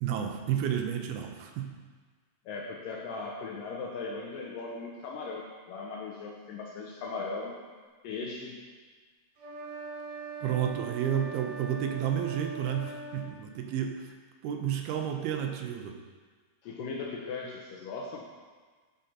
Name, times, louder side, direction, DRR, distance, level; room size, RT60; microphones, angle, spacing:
voice 1, 0.0-1.7 10.4-14.1 14.4-16.0, right 9 dB, 80° right, 4 dB, 2.5 m, -31 dB
voice 2, 2.5-7.6 8.0-8.6 16.6-18.3, left 4 dB, 75° left, -1 dB, 2.1 m, -38 dB
sound 1, 9.4-13.3, right 4 dB, 55° right, 2.6 m, -41 dB
13.0 x 5.3 x 4.2 m, 1.4 s
omnidirectional pair, 4.6 m